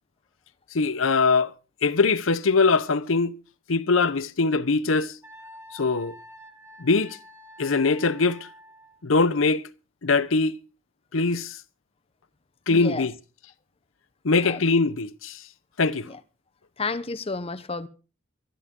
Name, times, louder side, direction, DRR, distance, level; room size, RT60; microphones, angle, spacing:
voice 1, 0.7-1.5 1.8-3.3 3.7-5.1 5.7-6.2 6.8-7.2 7.6-8.5 9.0-9.6 10.0-10.5 11.1-11.6 12.7-13.1 14.2-15.4 15.8-16.1, left 4 dB, 85° left, 0.9 m, -22 dB
Wind instrument woodwind instrument, 5.2-9.0, equal, 15° right, 1.9 m, -47 dB
voice 2, 12.7-13.1 14.4-14.6 16.0-16.2 16.8-17.9, left 3 dB, 30° left, 0.8 m, -31 dB
23.5 x 11.0 x 3.8 m
head